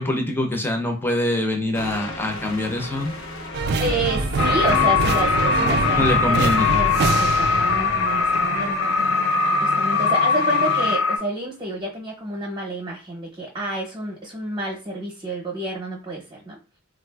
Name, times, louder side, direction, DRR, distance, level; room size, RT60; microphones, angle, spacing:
voice 1, 0.0-3.2 5.9-6.7, left 1 dB, 10° left, 3 dB, 0.5 m, -24 dB
sound 1, 1.7-6.8, left 1 dB, 90° left, 0.8 m, -36 dB
sound 2, 3.5-11.0, right 3 dB, 55° right, 0.4 m, -26 dB
voice 2, 3.8-8.8 9.6-16.6, right 1 dB, 25° right, -3 dB, 0.7 m, -29 dB
sound 3, 4.4-11.2, left 5 dB, 70° left, 0.5 m, -21 dB
3.6 x 2.4 x 2.2 m, 0.33 s
head